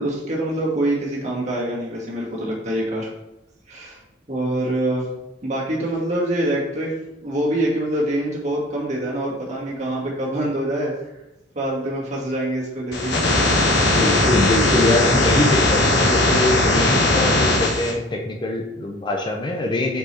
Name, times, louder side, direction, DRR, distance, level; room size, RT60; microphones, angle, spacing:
voice 1, 0.0-3.1 3.7-4.0 4.3-5.1 5.4-6.9 7.2-10.9 11.5-13.2, right 1 dB, 40° right, -4 dB, 1.9 m, -25 dB
sound 1, 12.9-17.9, left 2 dB, 60° left, 1.3 m, -18 dB
voice 2, 13.9-20.0, left 1 dB, 25° left, 1 dB, 0.6 m, -23 dB
5.5 x 4.7 x 4.3 m, 0.93 s
head